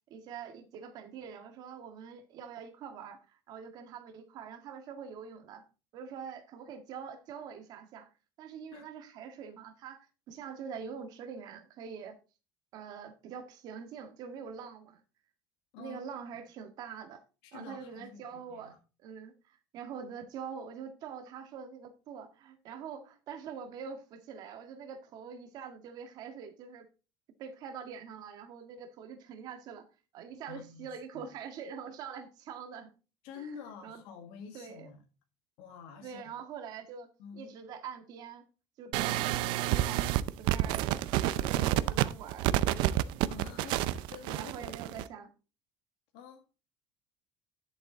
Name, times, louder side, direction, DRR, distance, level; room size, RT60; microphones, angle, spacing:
voice 1, 0.1-5.6 5.9-8.1 8.4-12.2 12.7-15.0 15.8-17.2 17.5-18.7 19.0-26.9 27.4-29.9 30.1-32.9 33.3-33.5 33.8-34.0 34.5-34.9 36.0-37.1 37.3-38.5 38.8-40.1 40.4-41.0 41.3-43.2 44.3-45.3, right 7 dB, 50° right, 1.7 m, -44 dB
voice 2, 17.4-18.8 30.5-31.3 33.2-35.0 35.6-36.2 37.2-37.6 41.2-41.9 43.3-45.1 46.1-46.5, left 6 dB, 80° left, 1.8 m, -48 dB
sound 1, 38.9-45.1, right 14 dB, 70° right, 0.6 m, -29 dB
11.0 x 7.1 x 3.9 m
cardioid pair, 165°, 8 cm